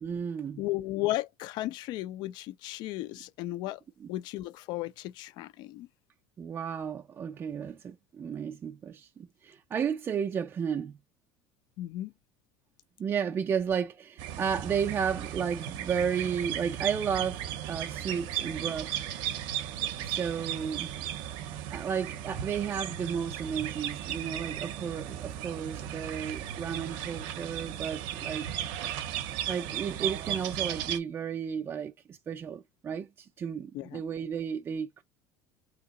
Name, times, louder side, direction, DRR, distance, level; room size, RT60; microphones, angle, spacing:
voice 1, 0.0-0.6 4.0-4.1 6.4-11.0 13.0-19.0 20.0-21.0 21.3-28.5 29.5-35.0, right 7 dB, 30° right, 0.4 m, -33 dB
voice 2, 0.6-3.8 4.1-5.9 11.8-12.1 33.7-34.0, left 16 dB, 65° left, 0.4 m, -34 dB
sound 1, 14.2-31.0, right 10 dB, 70° right, 0.6 m, -36 dB
2.9 x 2.8 x 3.7 m
supercardioid pair, 110°, 8 cm